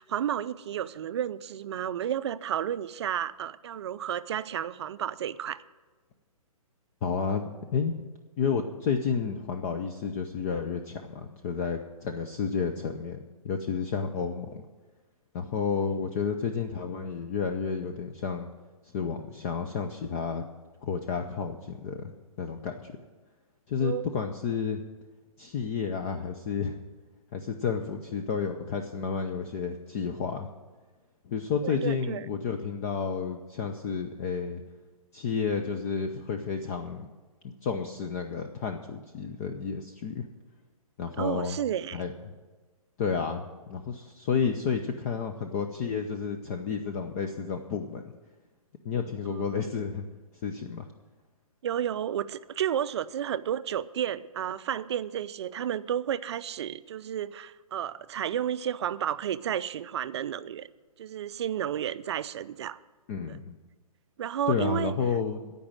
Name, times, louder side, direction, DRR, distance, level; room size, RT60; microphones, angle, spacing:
voice 1, 0.0-5.6 23.8-24.1 31.6-32.3 41.2-42.0 49.3-49.6 51.6-60.7 61.0-62.8 63.3-63.4 64.2-64.9, right 10 dB, 50° right, 14 dB, 0.5 m, -32 dB
voice 2, 7.0-8.0 8.4-13.2 13.4-14.6 15.3-18.5 18.9-20.4 20.8-22.1 22.4-23.0 23.7-24.8 25.4-26.8 27.3-30.5 31.3-34.6 35.1-37.1 37.4-40.3 41.0-41.6 41.9-42.1 43.0-48.0 48.8-50.0 50.4-50.9 63.1-63.5 64.5-65.5, left 6 dB, 25° left, 5 dB, 0.5 m, -31 dB
15.0 x 5.3 x 8.7 m, 1.3 s
hypercardioid pair, 155°, 19 cm